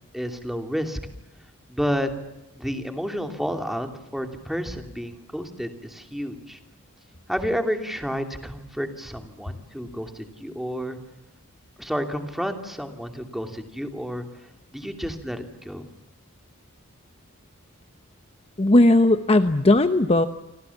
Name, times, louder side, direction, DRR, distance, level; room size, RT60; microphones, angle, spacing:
voice 1, 0.1-1.0 1.7-2.1 2.5-6.6 7.3-11.0 11.8-14.2 14.7-15.9, equal, ahead, 5 dB, 2.8 m, -30 dB
voice 2, 18.6-20.3, left 2 dB, 30° left, 9 dB, 0.9 m, -17 dB
28.5 x 25.0 x 7.2 m, 0.94 s
head